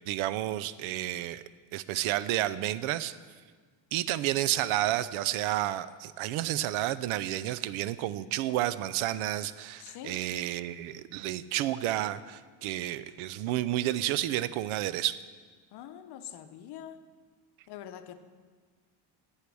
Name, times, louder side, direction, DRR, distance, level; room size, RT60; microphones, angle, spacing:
voice 1, 0.0-1.4 1.7-3.1 3.9-15.2, right 14 dB, 90° right, 16 dB, 0.6 m, -31 dB
voice 2, 9.8-10.2 15.7-17.0 17.7-18.2, left 10 dB, 55° left, 10 dB, 0.7 m, -44 dB
8.4 x 8.2 x 6.1 m, 1.5 s
cardioid pair, 170°, 47 cm